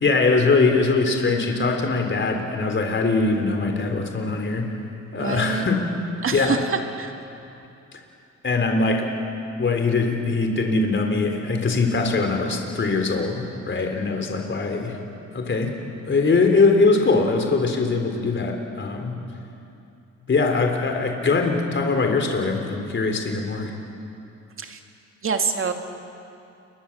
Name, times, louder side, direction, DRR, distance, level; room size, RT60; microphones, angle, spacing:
voice 1, 0.0-4.7 5.1-5.8 6.3-6.6 8.4-9.1 9.6-15.0 15.3-15.7 16.1-19.1 20.3-23.7, left 3 dB, 40° left, 3 dB, 3.7 m, -22 dB
voice 2, 5.2-5.7 6.2-7.1 24.6-24.8 25.2-25.7, right 5 dB, 45° right, 4 dB, 2.5 m, -26 dB
28.5 x 23.0 x 7.4 m, 2.7 s
cardioid pair, 90°, 30 cm